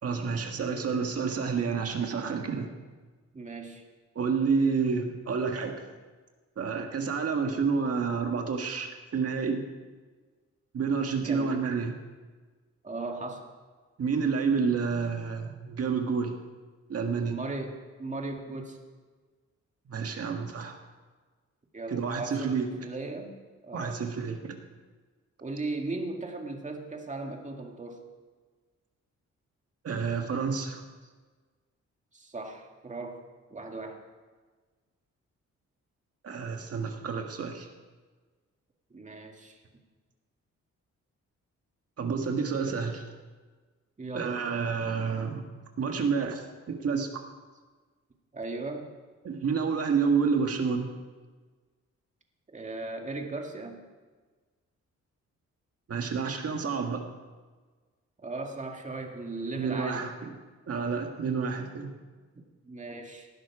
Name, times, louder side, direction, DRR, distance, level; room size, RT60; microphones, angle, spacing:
voice 1, 0.0-2.7 4.2-5.7 6.6-9.6 10.7-12.0 14.0-16.3 16.9-17.4 19.9-20.8 21.9-22.9 23.7-24.5 29.8-30.8 36.2-37.7 42.0-43.0 44.1-45.5 45.8-47.1 49.2-50.9 55.9-57.0 59.6-60.3 60.7-61.9, right 5 dB, 55° right, 3 dB, 1.7 m, -29 dB
voice 2, 3.3-3.8 11.2-11.6 12.8-13.5 17.2-18.8 21.7-22.5 22.8-23.3 23.6-24.0 25.4-28.0 32.1-33.2 33.5-34.0 38.9-39.6 44.0-44.4 48.3-48.9 52.5-53.8 58.2-60.1 62.6-63.3, right 3 dB, 25° right, 2 dB, 2.2 m, -37 dB
19.0 x 12.0 x 4.9 m, 1.4 s
cardioid pair, 120°, 29 cm